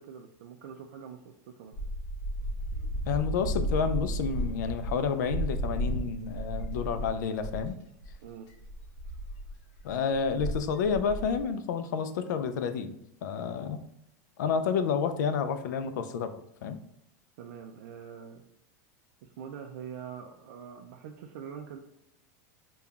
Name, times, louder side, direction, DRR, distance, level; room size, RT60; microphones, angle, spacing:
voice 1, 0.0-1.8 8.2-8.5 17.4-18.4 19.2-21.8, right 7 dB, 70° right, 3 dB, 0.4 m, -44 dB
sound 1, 1.7-7.7 8.0-8.1 8.5-11.4, right 1 dB, 45° left, 0.7 m, -34 dB
voice 2, 3.1-7.8 9.8-13.0 13.2-13.8 14.4-16.8, left 6 dB, 85° left, 10 dB, 0.4 m, -30 dB
5.3 x 2.3 x 2.3 m, 0.79 s
supercardioid pair, 165°, 9 cm